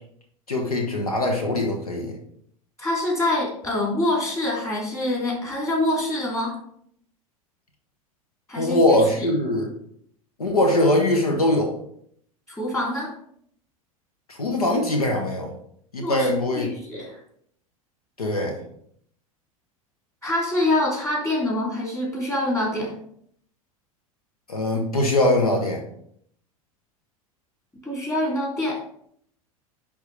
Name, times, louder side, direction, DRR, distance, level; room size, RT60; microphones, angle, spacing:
voice 1, 0.5-2.1 8.6-9.7 10.4-11.8 14.3-15.5 15.9-16.7 18.2-18.5 24.5-25.8, left 1 dB, 85° left, 2 dB, 1.0 m, -22 dB
voice 2, 2.8-6.6 8.5-9.3 12.5-13.1 16.0-16.3 16.5-17.2 20.2-22.9 27.8-28.8, left 1 dB, 15° left, -3 dB, 2.9 m, -25 dB
10.0 x 3.6 x 3.2 m, 0.66 s
figure-of-eight pair, 80°, 18 cm